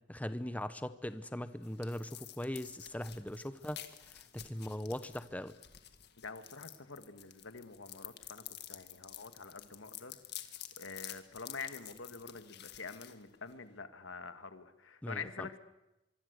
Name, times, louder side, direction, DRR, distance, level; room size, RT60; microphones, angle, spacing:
voice 1, 0.1-3.8 4.1-5.5 15.0-15.5, left 1 dB, 10° left, 12 dB, 0.8 m, -40 dB
sound 1, 1.1-13.8, left 12 dB, 55° left, 2.0 m, -51 dB
voice 2, 6.2-8.4 8.7-10.2 10.8-15.6, left 4 dB, 80° left, 10 dB, 1.8 m, -46 dB
24.5 x 24.5 x 8.2 m, 0.98 s
head